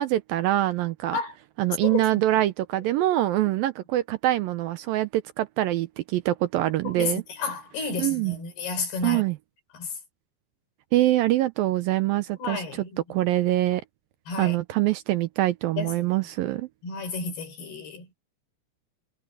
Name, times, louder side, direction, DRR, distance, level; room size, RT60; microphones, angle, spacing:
voice 1, 0.0-1.2 1.6-7.2 8.0-8.4 9.0-9.4 10.9-12.8 13.1-13.8 14.4-16.7, right 15 dB, 80° right, 2.2 m, -24 dB
voice 2, 1.8-2.2 6.8-9.2 9.7-9.9 12.4-13.0 14.3-14.6 15.8-16.1 16.8-18.1, left 4 dB, 75° left, 7.4 m, -32 dB
omnidirectional pair, 4.6 m